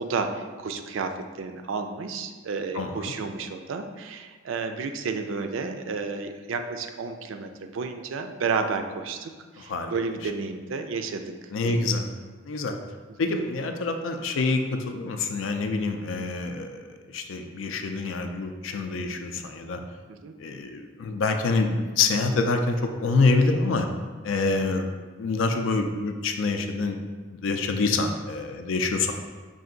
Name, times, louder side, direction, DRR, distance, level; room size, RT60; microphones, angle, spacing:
voice 1, 0.0-11.9 20.1-20.3 24.7-24.8, right 4 dB, 85° right, 7 dB, 0.4 m, -32 dB
voice 2, 11.5-12.0 12.4-12.8 13.2-16.9 17.1-19.8 20.4-23.9 24.2-24.9 25.2-27.0 27.3-29.1, left 3 dB, 80° left, 6 dB, 0.4 m, -26 dB
5.4 x 2.6 x 3.7 m, 1.5 s
head